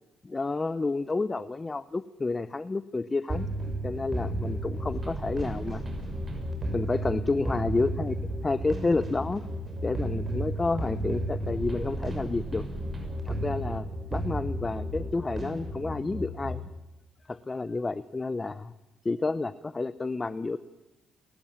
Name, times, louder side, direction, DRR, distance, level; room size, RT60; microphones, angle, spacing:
voice 1, 0.2-3.5 3.8-5.8 6.7-8.2 8.4-9.4 9.8-12.6 13.2-16.6 17.3-18.7 19.0-20.6, left 3 dB, 25° left, 14 dB, 0.8 m, -30 dB
sound 1, 3.3-16.6, right 1 dB, 35° right, 6.2 m, -33 dB
29.5 x 13.5 x 10.0 m, 0.98 s
cardioid pair, 90°, 0 cm